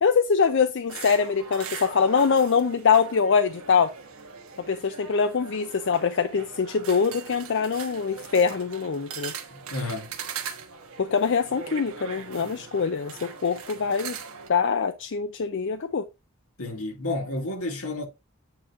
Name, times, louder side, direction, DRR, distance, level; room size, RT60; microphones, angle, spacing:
voice 1, 0.0-3.9 4.7-9.3 11.0-14.2 14.5-16.1, left 6 dB, 55° left, 0.5 m, -23 dB
sound 1, 0.9-14.5, right 6 dB, 70° right, 1.2 m, -40 dB
voice 2, 9.5-10.1 16.6-18.0, left 2 dB, 80° left, 1.9 m, -31 dB
8.7 x 2.9 x 4.7 m
head